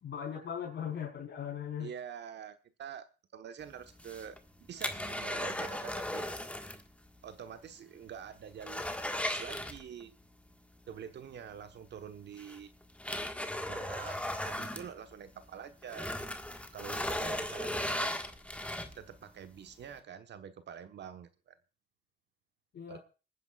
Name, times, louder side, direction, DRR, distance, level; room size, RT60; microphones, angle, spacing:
voice 1, 0.0-1.9 22.7-23.0, left 8 dB, 60° left, -1 dB, 4.2 m, -39 dB
voice 2, 1.8-3.0 3.3-6.2 7.2-8.8 9.1-10.2 10.9-12.7 13.7-14.2 14.4-16.1 16.7-18.2 19.0-21.6 22.9-23.0, right 8 dB, 60° right, 9 dB, 1.2 m, -46 dB
sound 1, 3.9-6.9 7.1-7.2 7.7-7.8 8.2-10.2 11.6-11.7 12.4-15.5 15.8-19.2 19.7-19.8, left 1 dB, 5° left, 1.6 m, -37 dB
26.5 x 9.8 x 2.4 m, 0.33 s
cardioid pair, 90°, 20 cm